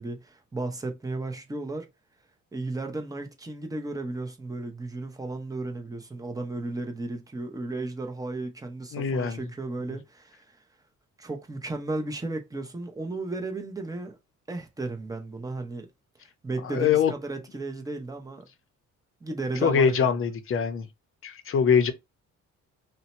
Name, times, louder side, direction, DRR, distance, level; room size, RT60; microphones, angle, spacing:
voice 1, 0.0-1.9 2.5-10.6 11.2-14.2 14.5-15.9 16.4-18.5 19.2-20.2, right 2 dB, 10° right, 0.7 m, -34 dB
voice 2, 8.9-9.4 16.6-17.1 19.6-20.9 21.2-21.9, left 7 dB, 40° left, 0.6 m, -23 dB
2.7 x 2.2 x 4.1 m
cardioid pair, 100°, 32 cm